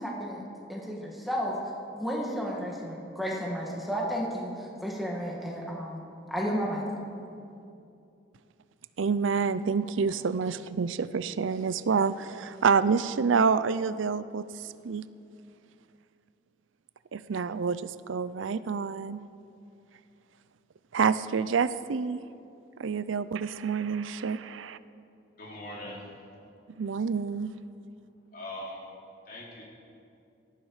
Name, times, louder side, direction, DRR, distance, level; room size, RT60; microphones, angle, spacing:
voice 1, 0.0-1.6 1.9-4.5 4.8-6.0 6.3-6.8, equal, ahead, -3 dB, 2.0 m, -32 dB
voice 2, 9.0-15.1 17.1-19.2 20.9-22.2 22.8-24.8 26.8-27.5, right 5 dB, 80° right, 15 dB, 0.5 m, -28 dB
voice 3, 25.4-26.1 28.3-28.9 29.3-29.6, left 1 dB, 50° left, -4 dB, 3.6 m, -41 dB
18.0 x 13.5 x 4.9 m, 2.6 s
head